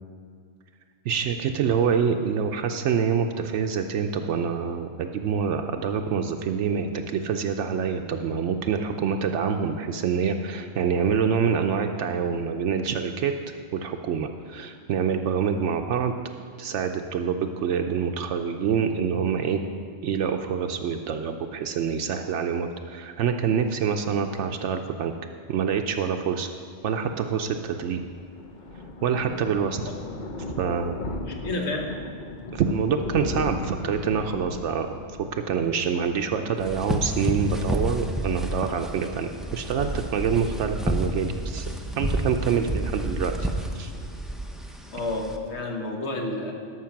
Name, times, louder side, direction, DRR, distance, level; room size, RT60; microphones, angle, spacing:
voice 1, 1.1-16.1 16.6-19.6 20.0-25.1 25.5-26.5 26.8-28.0 29.0-29.8 30.6-30.9 32.5-41.7 42.0-43.5 43.7-43.9, right 7 dB, 75° right, 5 dB, 0.8 m, -26 dB
Thunder, 27.6-37.0 37.4-37.6 37.9-38.0 38.2-38.3, left 2 dB, 45° left, 0.8 m, -37 dB
voice 2, 31.2-31.9 44.9-46.5, left 2 dB, 65° left, 2 dB, 1.5 m, -30 dB
sound 1, 36.6-45.4, equal, ahead, 0.3 m, -30 dB
12.0 x 6.5 x 5.8 m, 2.1 s
omnidirectional pair, 1.3 m